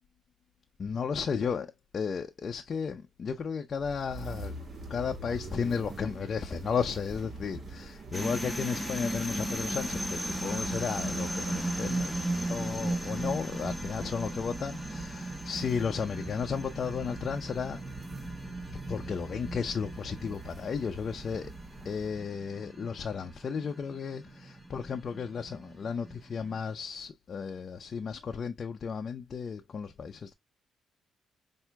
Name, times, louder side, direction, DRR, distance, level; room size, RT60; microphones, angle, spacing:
voice 1, 0.8-4.5 4.9-17.8 18.9-21.5 21.8-30.3, left 6 dB, 45° left, 0.5 m, -34 dB
sound 1, 3.8-22.3, right 3 dB, 50° right, 1.8 m, -46 dB
sound 2, 8.1-26.6, right 1 dB, 10° right, 1.0 m, -36 dB
5.7 x 2.6 x 2.2 m
cardioid pair, 90°, 0 cm